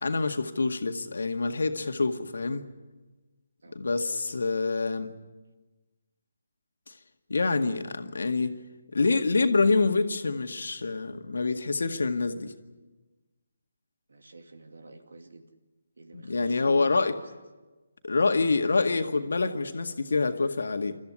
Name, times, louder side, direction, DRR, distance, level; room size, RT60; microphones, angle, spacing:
voice 1, 0.0-2.7 3.7-5.1 6.9-7.0 7.3-8.6 8.9-12.5 16.1-17.2 18.0-21.0, left 3 dB, 65° left, 6 dB, 1.9 m, -26 dB
voice 2, 14.1-15.4 16.0-17.3, right 2 dB, 65° right, 6 dB, 2.6 m, -50 dB
29.0 x 14.0 x 9.8 m, 1.2 s
figure-of-eight pair, 145°, 0 cm